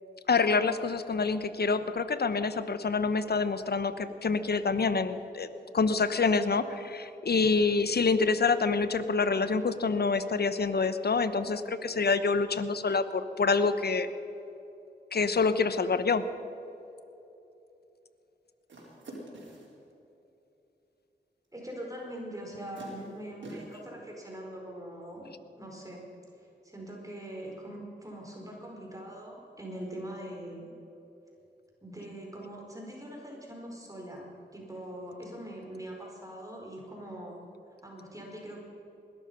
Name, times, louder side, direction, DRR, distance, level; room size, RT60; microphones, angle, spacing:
voice 1, 0.3-5.5 5.7-14.1 15.1-16.3, left 4 dB, 60° left, 12 dB, 1.0 m, -27 dB
sound 1, 18.7-19.8 21.6-21.7 22.8-23.9, right 1 dB, 85° right, 4.2 m, -46 dB
voice 2, 21.5-26.0 26.6-30.7 31.8-37.4 37.8-38.6, right 1 dB, 20° right, -2 dB, 4.8 m, -42 dB
20.0 x 12.0 x 5.6 m, 2.9 s
cardioid pair, 45°, 19 cm